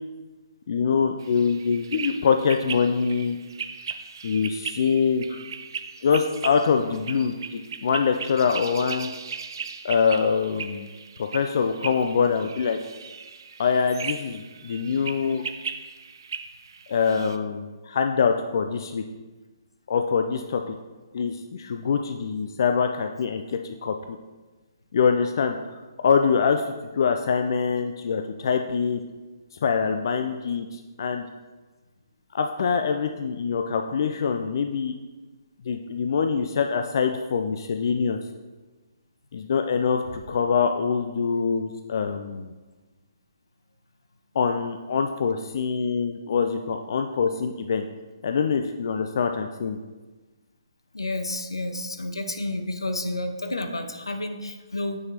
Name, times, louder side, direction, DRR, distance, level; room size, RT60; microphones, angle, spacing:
voice 1, 0.7-3.4 4.2-5.4 6.0-9.1 9.8-10.9 11.2-12.8 13.6-15.5 16.9-19.0 19.9-20.7 21.1-24.0 24.9-25.6 26.0-26.6 26.9-29.0 29.6-31.2 32.3-34.9 35.7-38.2 39.3-42.5 44.3-47.9 48.2-49.8, left 6 dB, 55° left, 5 dB, 0.4 m, -24 dB
sound 1, 1.2-17.4, right 6 dB, 60° right, 0.4 m, -38 dB
voice 2, 50.9-55.0, left 2 dB, 85° left, 7 dB, 0.7 m, -30 dB
7.5 x 6.3 x 2.9 m, 1.2 s
figure-of-eight pair, 140°, 2 cm